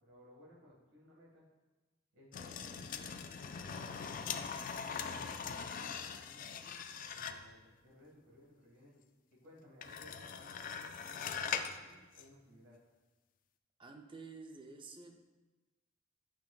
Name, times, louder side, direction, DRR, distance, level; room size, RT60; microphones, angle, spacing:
voice 1, 0.0-1.5 2.1-4.6 4.9-9.0 9.3-12.8, left 1 dB, 85° right, -5 dB, 1.8 m, -60 dB
sound 1, 2.3-7.6 9.8-11.8 12.2-12.3, left 6 dB, 45° left, 0.3 m, -41 dB
voice 2, 13.8-15.3, right 4 dB, 25° right, 4 dB, 0.5 m, -51 dB
8.8 x 5.7 x 2.4 m, 1.2 s
head